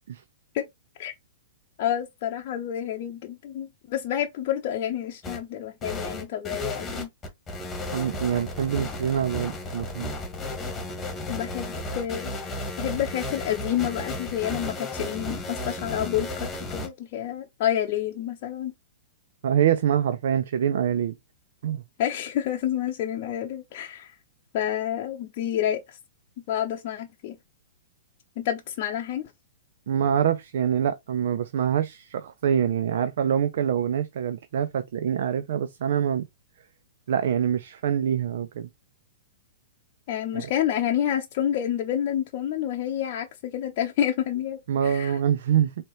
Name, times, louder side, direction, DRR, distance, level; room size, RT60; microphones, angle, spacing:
voice 1, 1.8-7.1 11.3-12.3 12.8-18.7 22.0-24.1 24.5-26.0 26.5-27.4 28.4-29.3 40.1-45.2, left 10 dB, 50° left, 0.7 m, -29 dB
sound 1, 5.2-5.4 5.8-16.9, left 1 dB, 15° left, 1.6 m, -34 dB
voice 2, 7.9-10.1 19.4-21.2 21.6-21.8 29.9-36.2 37.1-38.7 40.3-40.5 44.7-45.8, right 9 dB, 65° right, 0.5 m, -25 dB
4.5 x 2.8 x 3.0 m
hypercardioid pair, 125°, 0 cm